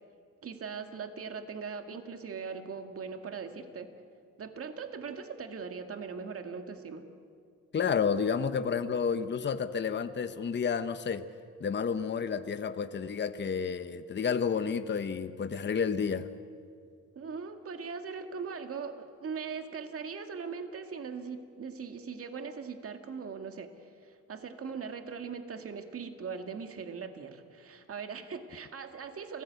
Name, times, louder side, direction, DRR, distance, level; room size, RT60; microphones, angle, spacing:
voice 1, 0.4-3.9 4.4-7.0 17.2-23.7 24.0-29.4, right 5 dB, 50° right, 6 dB, 2.1 m, -40 dB
voice 2, 7.7-11.2 11.6-16.3, left 6 dB, 35° left, 10 dB, 1.0 m, -30 dB
28.5 x 16.0 x 8.3 m, 2.2 s
cardioid pair, 90°, 30 cm